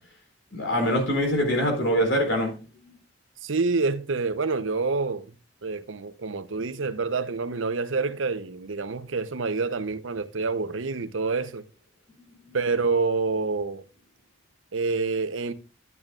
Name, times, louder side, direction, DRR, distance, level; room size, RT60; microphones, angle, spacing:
voice 1, 0.5-2.6, equal, 70° left, 4.2 m, -24 dB
voice 2, 3.4-5.3 5.6-11.6 12.5-13.8 14.7-15.5, right 4 dB, 80° right, 0.8 m, -27 dB
12.0 x 8.9 x 2.4 m
head